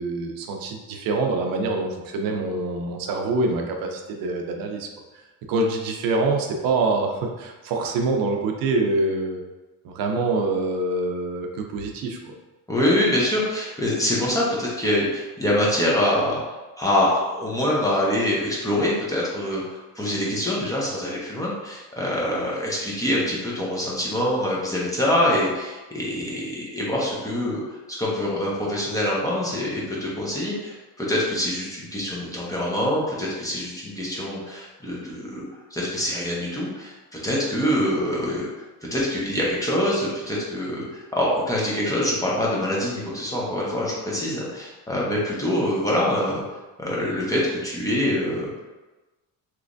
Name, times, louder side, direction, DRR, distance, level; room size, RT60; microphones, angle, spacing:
voice 1, 0.0-4.9 5.1-5.2 5.5-9.4 9.8-12.2, right 3 dB, 70° right, 3 dB, 0.6 m, -25 dB
voice 2, 12.7-35.4 35.7-38.6 38.9-46.4 46.8-48.5, left 1 dB, 10° left, -5 dB, 0.7 m, -25 dB
3.2 x 3.0 x 2.5 m, 1.1 s
cardioid pair, 140°, 35 cm